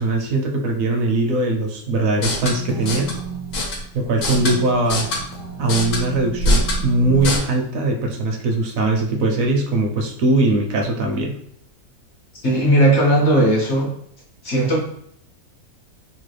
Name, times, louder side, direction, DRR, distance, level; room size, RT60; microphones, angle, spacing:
voice 1, 0.0-3.2 3.9-5.1 5.6-11.4, right 2 dB, 70° right, 1 dB, 0.9 m, -20 dB
sound 1, 2.1-7.4, equal, 75° left, 1.2 m, -25 dB
voice 2, 12.4-13.9 14.4-14.8, right 1 dB, 60° left, -2 dB, 0.9 m, -16 dB
3.0 x 2.2 x 3.1 m, 0.67 s
omnidirectional pair, 1.6 m